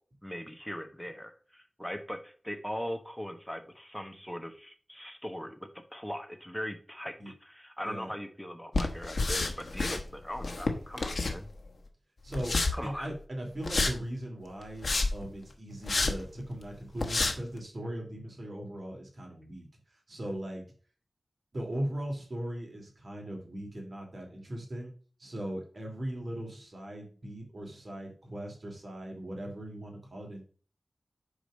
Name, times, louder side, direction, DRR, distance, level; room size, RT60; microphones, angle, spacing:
voice 1, 0.2-5.6 5.9-11.5 12.7-13.1, equal, 5° left, 6 dB, 1.1 m, -40 dB
sound 1, 8.7-10.0 10.4-11.7 12.3-12.7 13.6-13.9 14.6-15.3 15.9-16.1 16.6-16.7 17.0-17.3, left 3 dB, 65° left, 1.2 m, -29 dB
voice 2, 12.2-12.6 12.8-19.7 20.1-20.6 21.5-24.9 25.2-30.4, right 1 dB, 55° right, 0 dB, 2.6 m, -39 dB
5.2 x 4.9 x 6.1 m, 0.41 s
wide cardioid pair, 80°, 0 cm